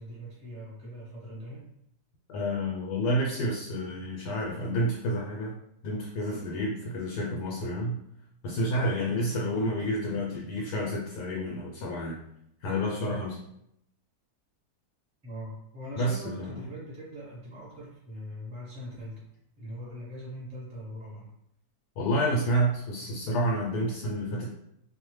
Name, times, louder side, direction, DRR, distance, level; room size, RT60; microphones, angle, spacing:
voice 1, 0.0-1.7 9.4-9.6 15.2-19.2 19.6-21.3, equal, 10° right, -5 dB, 0.5 m, -41 dB
voice 2, 2.3-5.6 5.8-8.0 8.4-12.2 12.6-13.4 16.0-16.6 22.0-24.5, equal, 85° left, -2 dB, 1.2 m, -29 dB
2.7 x 2.1 x 3.1 m, 0.77 s
omnidirectional pair, 1.7 m